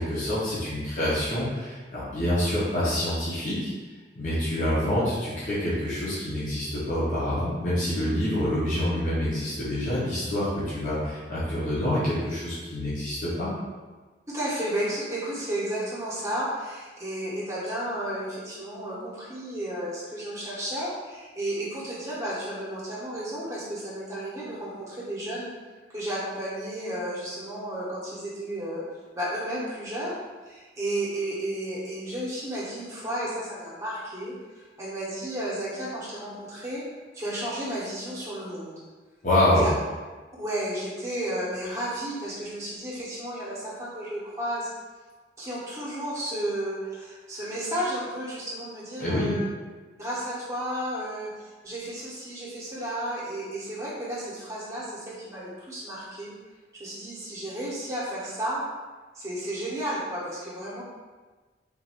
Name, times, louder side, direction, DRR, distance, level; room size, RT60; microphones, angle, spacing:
voice 1, 0.0-3.7 4.2-13.5 39.2-39.7 49.0-49.3, left 1 dB, 45° left, -10 dB, 1.0 m, -26 dB
voice 2, 14.3-25.5 25.9-28.8 29.1-30.1 30.5-36.8 37.1-38.8 39.5-39.7 40.4-44.7 45.4-49.5 50.0-56.3 56.7-58.6 59.1-60.8, right 1 dB, 15° right, -8 dB, 1.0 m, -33 dB
3.7 x 2.6 x 4.3 m, 1.3 s
head